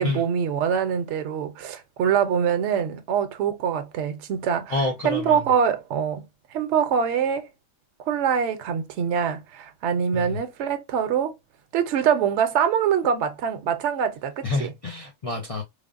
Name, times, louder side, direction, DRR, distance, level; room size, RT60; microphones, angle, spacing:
voice 1, 0.0-6.2 6.5-7.5 8.1-11.3 11.7-14.7, right 7 dB, 70° right, 0.8 m, -24 dB
voice 2, 4.7-5.5 10.1-10.4 14.4-15.6, left 2 dB, 65° left, 0.3 m, -28 dB
3.2 x 2.0 x 2.3 m
omnidirectional pair, 1.4 m